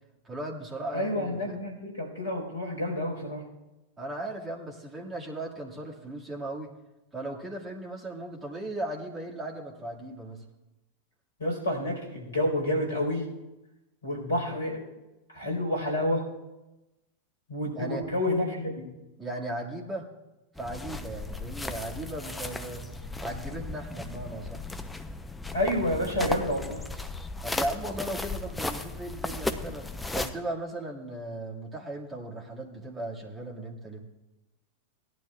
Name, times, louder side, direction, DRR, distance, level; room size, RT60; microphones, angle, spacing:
voice 1, 0.2-1.6 4.0-6.7 7.1-10.4 17.7-18.0 19.2-20.1 20.6-22.9 23.2-24.6 27.4-34.1, right 1 dB, 15° right, -2 dB, 2.1 m, -37 dB
voice 2, 0.9-3.4 11.4-13.3 14.0-14.8 15.3-16.3 17.5-18.9 25.5-26.8, left 1 dB, 70° left, 1 dB, 4.5 m, -29 dB
sound 1, 20.6-30.3, left 2 dB, 5° left, 0.7 m, -36 dB
18.0 x 11.5 x 2.4 m, 1.0 s
figure-of-eight pair, 90°, 0 cm